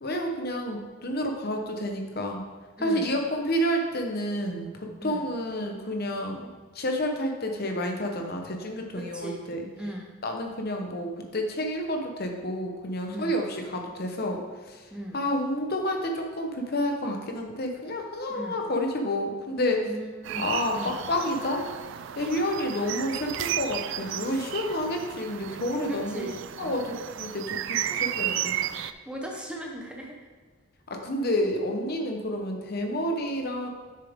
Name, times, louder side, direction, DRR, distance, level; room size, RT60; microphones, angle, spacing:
voice 1, 0.0-2.4 2.8-4.7 5.0-6.5 6.7-9.6 10.2-14.4 14.7-14.8 15.1-19.9 20.4-21.6 22.2-26.3 26.6-28.6 30.9-33.7, left 1 dB, 45° left, 3 dB, 0.9 m, -29 dB
voice 2, 2.8-3.2 5.0-5.3 8.9-9.4 9.8-10.1 13.1-13.4 14.9-15.2 18.3-18.6 19.8-21.0 22.2-22.3 25.9-26.9 27.9-28.0 28.6-30.3, right 1 dB, 5° right, 0 dB, 0.7 m, -39 dB
sound 1, 20.2-28.9, right 11 dB, 60° right, 0.3 m, -33 dB
7.5 x 6.7 x 3.6 m, 1.5 s
head